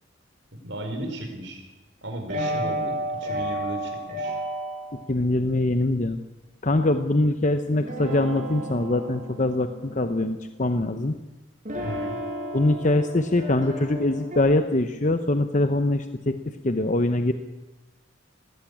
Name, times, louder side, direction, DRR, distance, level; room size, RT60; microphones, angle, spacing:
voice 1, 0.6-1.6 2.0-3.0 3.2-4.4 11.8-12.2, right 1 dB, 70° right, 3 dB, 5.2 m, -35 dB
sound 1, 2.3-5.0 7.7-11.2 11.6-14.4, right 1 dB, 40° right, 5.7 m, -33 dB
voice 2, 5.1-6.2 6.6-11.2 12.5-16.3 16.6-17.3, left 2 dB, 40° left, 8 dB, 0.9 m, -23 dB
20.0 x 15.0 x 8.6 m, 1.1 s
head